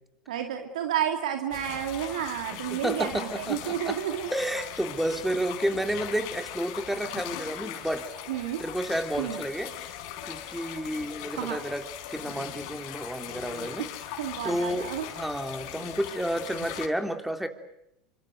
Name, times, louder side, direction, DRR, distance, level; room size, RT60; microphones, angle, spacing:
voice 1, 0.3-4.3 8.3-8.6 9.2-9.4 11.3-11.6 13.8-13.9 14.2-15.1, right 10 dB, 80° right, 5 dB, 2.4 m, -31 dB
sound 1, 1.5-16.9, left 10 dB, 70° left, 4.0 m, -40 dB
voice 2, 2.7-4.0 4.3-8.0 8.6-9.9 10.2-11.8 12.1-13.9 14.4-17.5, right 1 dB, 5° right, 7 dB, 3.4 m, -31 dB
28.0 x 25.5 x 8.0 m, 0.80 s
hypercardioid pair, 95°, 4 cm